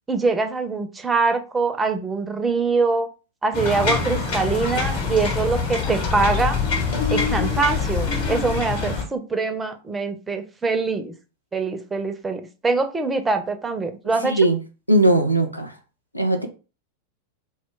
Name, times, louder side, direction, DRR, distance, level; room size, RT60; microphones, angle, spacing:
voice 1, 0.1-3.1 3.4-6.6 7.1-11.1 11.5-14.4, right 4 dB, 15° right, 0.4 m, -23 dB
sound 1, 3.5-9.0, left 5 dB, 50° left, 1.0 m, -24 dB
voice 2, 14.9-15.7 16.1-16.5, right 1 dB, 90° left, 0.4 m, -18 dB
2.2 x 2.0 x 3.6 m
figure-of-eight pair, 90°, 0 cm